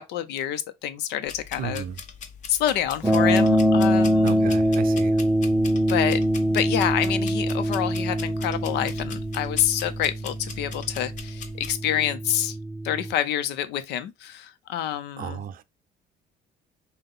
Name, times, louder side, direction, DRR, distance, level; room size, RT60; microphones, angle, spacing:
voice 1, 0.0-1.9 2.5-4.4 5.6-6.2 6.5-12.6 12.8-15.4, left 11 dB, 80° left, 0.7 m, -27 dB
sound 1, 1.3-11.7, left 6 dB, 45° left, 0.9 m, -42 dB
voice 2, 1.6-2.0 4.2-5.1 15.2-15.6, right 9 dB, 55° right, 0.5 m, -34 dB
sound 2, 3.0-13.1, equal, 5° right, 0.6 m, -24 dB
5.6 x 2.2 x 3.6 m
cardioid pair, 110°, 17 cm